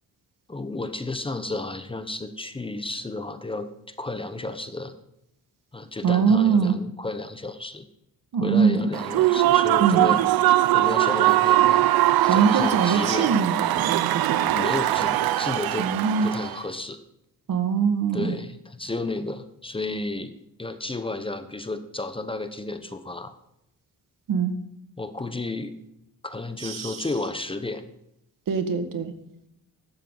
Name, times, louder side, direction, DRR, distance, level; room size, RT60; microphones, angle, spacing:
voice 1, 0.5-4.9 5.7-7.9 8.4-10.2 10.7-11.9 12.2-13.4 14.5-15.9 16.2-17.0 18.1-23.3 25.0-25.7 26.2-27.8, left 2 dB, 15° left, 10 dB, 1.0 m, -32 dB
voice 2, 6.0-6.7 8.3-8.8 9.8-10.1 12.2-14.4 15.8-16.3 17.5-18.4 24.3-24.6 26.6-27.1 28.5-29.1, right 6 dB, 65° right, 8 dB, 2.0 m, -22 dB
Human voice / Cheering / Applause, 8.9-16.6, right 14 dB, 85° right, 0.6 m, -21 dB
15.5 x 12.5 x 4.0 m, 0.81 s
cardioid pair, 135°, 35 cm